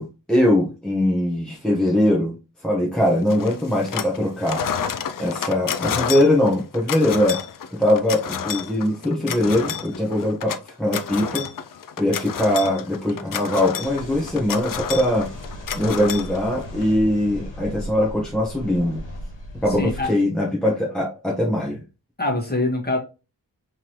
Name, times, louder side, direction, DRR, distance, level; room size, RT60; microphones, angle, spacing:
voice 1, 0.0-2.3 2.6-4.6 5.2-7.4 7.8-11.5 12.0-15.3 15.7-19.0 19.6-21.8, left 1 dB, ahead, -2 dB, 1.0 m, -21 dB
sound 1, 3.3-4.2 4.4-16.8, left 8 dB, 50° left, 0.5 m, -30 dB
sound 2, 13.8-20.1, equal, 80° left, 1.4 m, -37 dB
voice 2, 19.7-20.1 22.2-23.0, left 2 dB, 20° left, 1 dB, 1.5 m, -24 dB
3.6 x 3.2 x 2.9 m, 0.30 s
cardioid pair, 55°, 44 cm